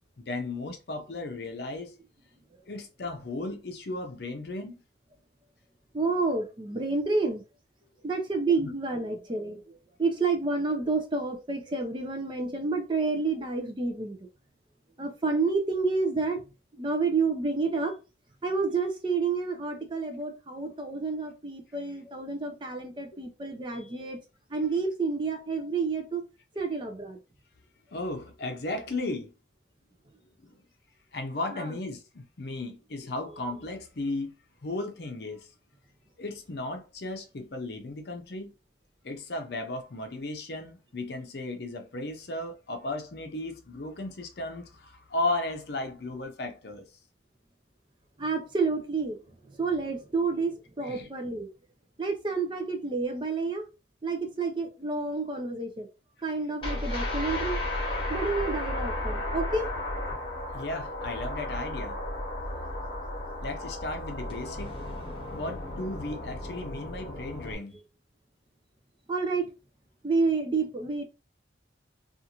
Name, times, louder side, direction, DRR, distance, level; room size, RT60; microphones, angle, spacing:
voice 1, 0.2-2.0 2.7-4.7 8.6-8.7 23.1-23.2 27.9-29.3 30.4-30.6 31.1-34.3 34.6-35.5 36.2-38.5 39.0-46.9 50.8-51.1 60.5-62.0 63.4-64.8 65.3-67.8, left 2 dB, 60° left, 0.6 m, -35 dB
voice 2, 5.9-7.4 8.0-9.6 10.0-14.2 15.0-16.4 16.8-17.9 18.4-24.2 24.5-26.2 26.6-27.2 31.5-31.8 48.2-49.2 49.6-51.5 52.0-53.6 54.0-55.9 56.2-57.6 58.1-59.7 69.1-69.5 70.0-71.0, right 4 dB, 25° right, 0.5 m, -29 dB
sound 1, 56.6-67.5, left 1 dB, 30° left, 1.0 m, -34 dB
2.5 x 2.4 x 2.8 m
head